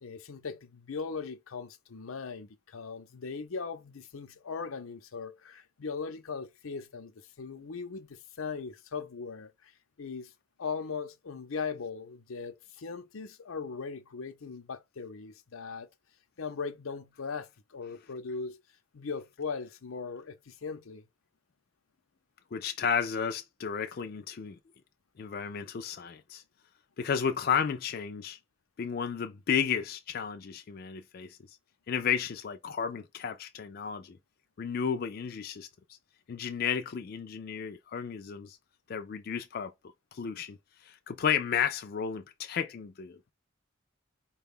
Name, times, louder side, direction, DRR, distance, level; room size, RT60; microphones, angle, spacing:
voice 1, 0.0-9.7 10.0-10.3 10.6-15.9 16.4-18.6 18.9-21.0, left 5 dB, 85° left, 0.6 m, -39 dB
voice 2, 22.5-24.6 25.2-26.4 27.0-28.4 28.8-31.6 31.9-34.2 34.6-35.7 36.3-38.6 38.9-39.7 40.1-40.6 40.8-43.3, left 7 dB, 45° left, 0.4 m, -33 dB
4.6 x 2.3 x 3.6 m
head